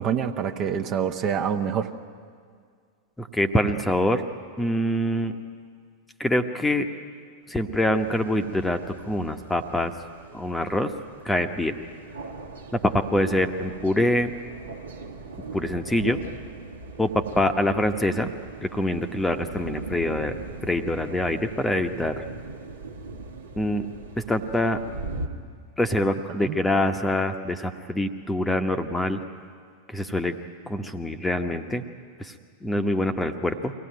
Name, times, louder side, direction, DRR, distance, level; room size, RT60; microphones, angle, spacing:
voice 1, 0.0-1.9 26.3-26.6, right 8 dB, 35° right, 7 dB, 1.1 m, -26 dB
voice 2, 3.2-4.2 4.6-5.3 6.2-6.9 7.5-9.9 10.3-10.9 11.2-11.8 12.7-14.3 15.5-16.2 17.0-18.3 18.6-20.3 20.6-22.2 23.6-23.8 24.2-24.8 25.8-29.2 29.9-30.4 30.7-31.8 32.2-32.3 32.6-33.7, left 1 dB, 10° left, 7 dB, 1.1 m, -25 dB
sound 1, 7.9-25.3, right 3 dB, 70° right, 1.5 m, -40 dB
23.0 x 17.0 x 9.3 m, 2.1 s
figure-of-eight pair, 90°, 0 cm